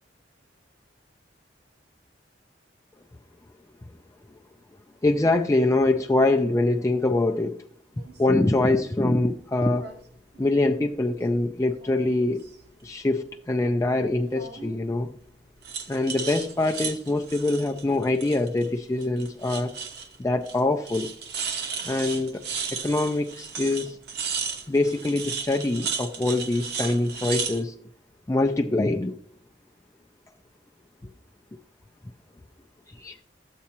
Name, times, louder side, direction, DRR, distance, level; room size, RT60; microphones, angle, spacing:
voice 1, 5.0-7.6 8.2-9.9 10.4-12.4 12.8-15.1 15.9-19.7 20.2-21.1 21.8-22.4 22.7-24.0 24.7-27.7 28.3-29.2 33.0-33.2, left 2 dB, 15° left, 3 dB, 0.4 m, -24 dB
sound 1, 8.0-8.2 9.7-10.0 10.3-11.3 11.7-12.7 14.3-14.8 15.6-18.7 19.0-20.1 20.4-20.6 20.8-27.6, right 6 dB, 60° right, 1.0 m, -35 dB
13.0 x 8.3 x 2.9 m, 0.65 s
head